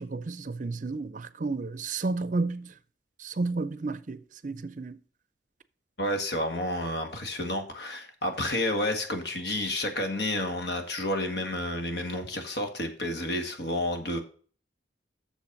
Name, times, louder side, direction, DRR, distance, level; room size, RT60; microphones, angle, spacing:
voice 1, 0.0-2.7 3.2-5.0, right 3 dB, 45° right, 0.6 m, -32 dB
voice 2, 6.0-14.2, left 1 dB, 65° left, 1.8 m, -30 dB
7.2 x 7.0 x 5.4 m
head